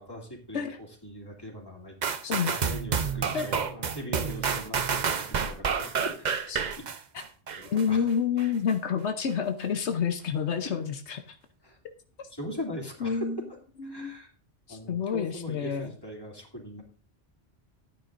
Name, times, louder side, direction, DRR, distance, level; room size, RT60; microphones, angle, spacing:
voice 1, 0.0-2.0 2.5-6.9 7.6-8.1 11.6-11.8 12.3-13.4 13.8-14.3 14.7-16.8, equal, 20° left, -1 dB, 2.8 m, -40 dB
sound 1, 2.0-7.9 8.4-8.5, right 6 dB, 45° right, 0.8 m, -29 dB
voice 2, 2.2-2.5 3.3-3.6 6.5-6.6 7.7-11.4 13.0-13.4 13.8-14.1 14.7-15.9, left 7 dB, 85° left, 6 dB, 1.1 m, -29 dB
14.5 x 9.4 x 2.6 m, 0.41 s
omnidirectional pair, 1.1 m